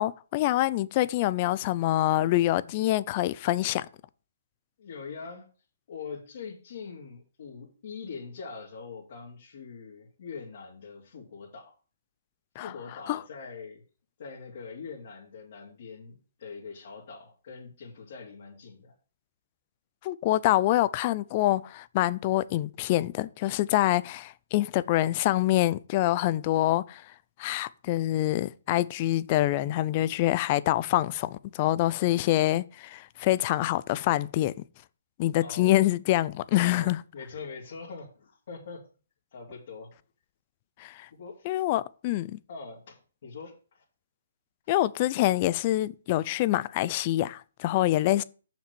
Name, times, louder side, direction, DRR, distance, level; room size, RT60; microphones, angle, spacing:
voice 1, 0.0-3.9 12.6-12.7 13.1-13.2 20.0-27.1 27.4-34.5 35.2-37.0 40.8-41.1 41.4-42.4 44.7-48.2, left 15 dB, 30° left, 0.5 m, -26 dB
voice 2, 4.8-5.5 5.9-11.7 12.6-13.8 14.2-18.9 35.4-35.8 36.6-38.8 39.3-39.9 41.1-41.6 42.5-43.8, left 5 dB, 55° left, 3.0 m, -43 dB
7.2 x 6.0 x 6.9 m
hypercardioid pair, 160°, 0 cm